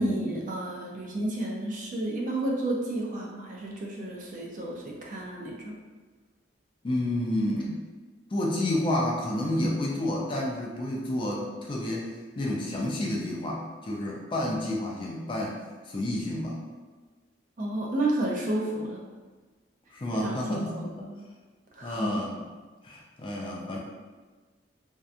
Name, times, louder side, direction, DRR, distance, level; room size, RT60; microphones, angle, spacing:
voice 1, 0.0-5.8 17.6-19.0 20.1-20.9 21.7-22.2, right 1 dB, 45° right, -2 dB, 0.4 m, -31 dB
voice 2, 6.8-7.8 8.3-12.1 12.4-16.6 19.9-21.1 21.8-22.4 22.8-23.8, left 1 dB, 25° left, -3 dB, 0.3 m, -30 dB
2.7 x 2.2 x 2.4 m, 1.3 s
head